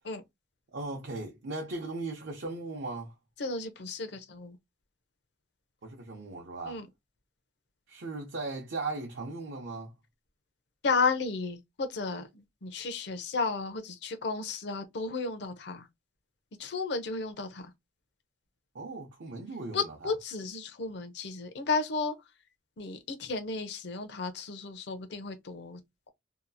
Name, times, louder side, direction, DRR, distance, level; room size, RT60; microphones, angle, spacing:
voice 1, 0.7-3.1 5.8-6.8 7.9-9.9 18.7-20.1, right 3 dB, 65° right, 0.6 m, -38 dB
voice 2, 3.4-4.6 6.7-6.9 10.8-15.9 16.6-17.7 19.7-22.1 22.8-25.8, left 4 dB, 60° left, 0.6 m, -33 dB
2.8 x 2.3 x 2.6 m
head